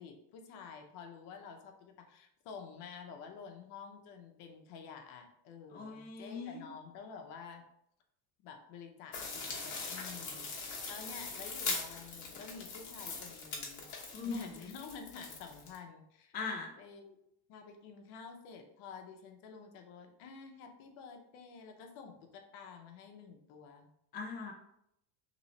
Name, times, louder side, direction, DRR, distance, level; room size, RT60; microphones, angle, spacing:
voice 1, 0.0-7.6 8.4-13.9 14.2-16.3 16.8-17.2 17.5-23.9, left 5 dB, 65° left, 4 dB, 0.8 m, -50 dB
voice 2, 5.7-6.7 14.1-14.5 16.3-16.7 24.1-24.5, left 4 dB, 25° left, 1 dB, 0.4 m, -40 dB
sound 1, 9.1-15.8, left 4 dB, 40° left, 1.1 m, -41 dB
3.0 x 3.0 x 4.0 m, 0.77 s
cardioid pair, 150°, 43 cm